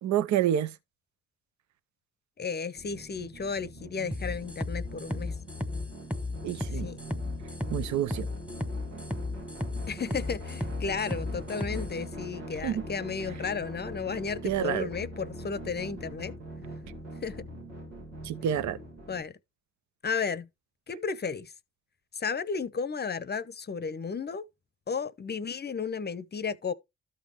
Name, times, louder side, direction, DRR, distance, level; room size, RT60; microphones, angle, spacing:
voice 1, 0.0-0.7 6.4-6.9 7.7-8.3 12.6-12.8 14.4-14.9 18.2-18.8, right 10 dB, 55° right, 0.7 m, -28 dB
voice 2, 2.4-5.3 6.8-7.0 9.9-16.3 17.2-17.4 19.1-19.4 20.0-20.5 20.9-21.5 22.2-24.4 24.9-26.7, left 5 dB, 30° left, 0.8 m, -33 dB
sound 1, 2.7-19.2, right 1 dB, 85° right, 1.9 m, -42 dB
sound 2, 4.1-11.9, left 2 dB, 5° right, 1.3 m, -34 dB
13.5 x 5.2 x 3.0 m
hypercardioid pair, 45°, 35 cm